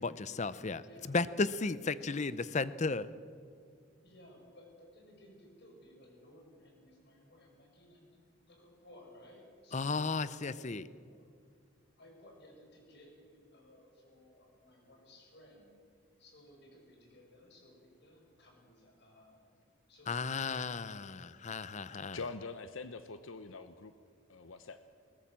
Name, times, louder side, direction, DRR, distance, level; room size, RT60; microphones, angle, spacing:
voice 1, 0.0-3.1 9.7-10.9 20.1-22.2, left 4 dB, 35° left, 16 dB, 0.6 m, -34 dB
voice 2, 0.7-1.2 2.0-2.1 4.0-8.2 8.5-11.3 12.0-15.8 16.2-19.4 19.9-21.3 22.3-22.5, left 1 dB, 55° left, 0 dB, 6.2 m, -59 dB
voice 3, 22.1-23.9 24.3-24.8, left 4 dB, 75° left, 11 dB, 0.8 m, -44 dB
21.0 x 19.5 x 7.5 m, 2.2 s
head